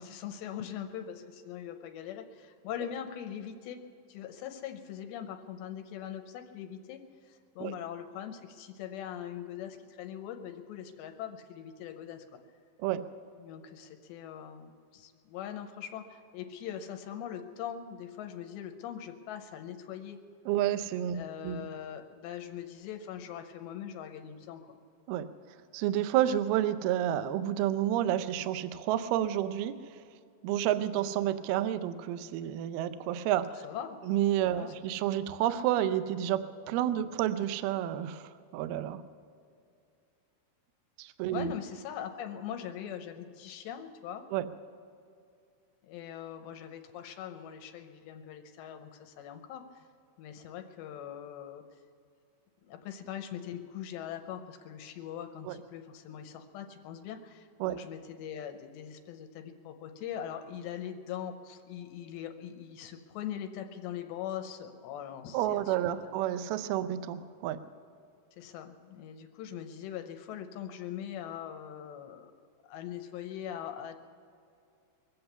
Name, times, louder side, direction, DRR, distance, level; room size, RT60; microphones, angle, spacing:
voice 1, 0.0-3.8 4.1-12.3 13.4-20.2 21.1-24.7 33.6-34.0 34.5-34.7 41.3-44.2 45.8-49.8 50.2-51.6 52.6-65.8 66.1-66.2 68.4-72.3 72.6-74.0, left 9 dB, 75° left, 6 dB, 2.9 m, -41 dB
voice 2, 20.5-21.7 25.1-25.3 25.7-29.7 30.4-33.6 34.0-39.0 41.0-41.5 44.3-44.4 55.5-55.6 57.6-57.8 65.3-67.6, right 11 dB, 90° right, 12 dB, 2.2 m, -30 dB
23.5 x 7.9 x 6.9 m, 2.5 s
omnidirectional pair, 5.3 m